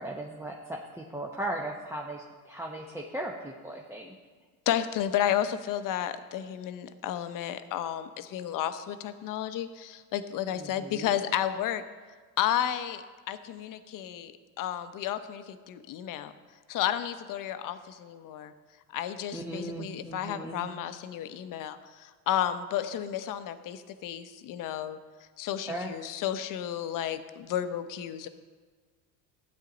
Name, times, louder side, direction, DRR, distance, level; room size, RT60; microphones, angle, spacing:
voice 1, 0.0-4.1 10.5-11.1 19.3-20.7 25.7-25.9, right 1 dB, 5° right, -1 dB, 0.8 m, -37 dB
voice 2, 4.7-11.8 12.4-14.3 14.6-16.3 16.7-18.5 18.9-25.0 25.4-28.3, left 10 dB, 50° left, 11 dB, 0.8 m, -32 dB
13.0 x 9.1 x 3.9 m, 1.5 s
supercardioid pair, 110°, 42 cm